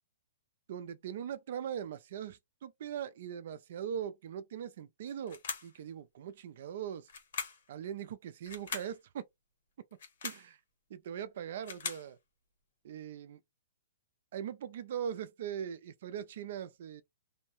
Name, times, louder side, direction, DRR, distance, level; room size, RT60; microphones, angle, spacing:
voice 1, 0.7-7.1 7.7-9.2 10.2-10.6 10.9-12.2 12.8-13.4 14.3-17.0, right 9 dB, 60° right, 0.4 m, -40 dB
sound 1, 5.3-5.8 7.1-7.7 8.5-9.0 9.9-10.5 11.4-12.1, left 5 dB, 65° left, 1.1 m, -40 dB
2.7 x 2.1 x 3.0 m
hypercardioid pair, 150°, 0 cm